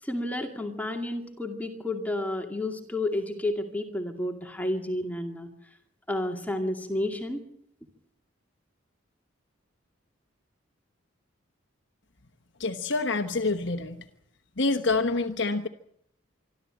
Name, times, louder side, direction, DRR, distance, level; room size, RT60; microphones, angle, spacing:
voice 1, 0.0-5.5 6.1-7.4, left 1 dB, 10° left, 3 dB, 2.3 m, -31 dB
voice 2, 12.6-14.0 14.6-15.7, left 3 dB, 60° left, 6 dB, 1.2 m, -27 dB
26.0 x 13.0 x 8.9 m, 0.72 s
head